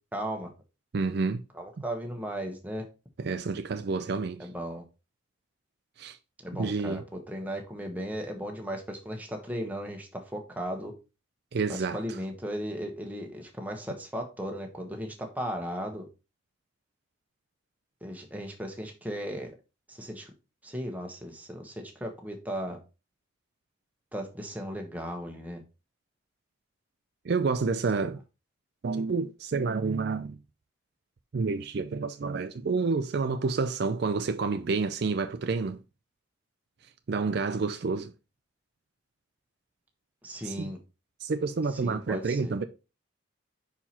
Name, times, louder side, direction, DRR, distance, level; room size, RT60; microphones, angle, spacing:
voice 1, 0.1-0.5 1.5-2.8 4.4-4.8 6.4-10.9 11.7-16.1 18.0-19.5 19.9-20.3 20.6-22.8 24.1-25.6 40.2-40.8 41.7-42.6, equal, 10° right, 1.1 m, -36 dB
voice 2, 0.9-1.4 3.2-4.5 6.0-6.2 6.6-7.0 11.5-12.0 27.2-28.2 28.8-30.4 31.3-35.8 37.1-38.1 40.4-40.7 41.2-42.7, right 4 dB, 55° right, 0.4 m, -29 dB
5.7 x 4.6 x 4.3 m
head